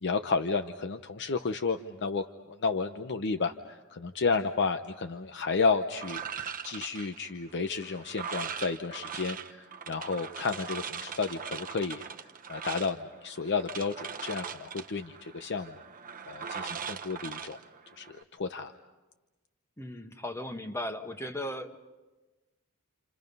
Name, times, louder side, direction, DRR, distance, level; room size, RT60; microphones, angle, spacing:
voice 1, 0.0-2.3 2.6-12.1 12.5-15.8 16.3-17.6 18.0-18.8, left 4 dB, 55° left, 8 dB, 0.8 m, -32 dB
sound 1, 5.9-18.2, right 7 dB, 40° right, 1.0 m, -41 dB
voice 2, 19.8-21.8, left 1 dB, 10° left, 6 dB, 1.3 m, -37 dB
29.0 x 28.5 x 5.4 m, 1.1 s
head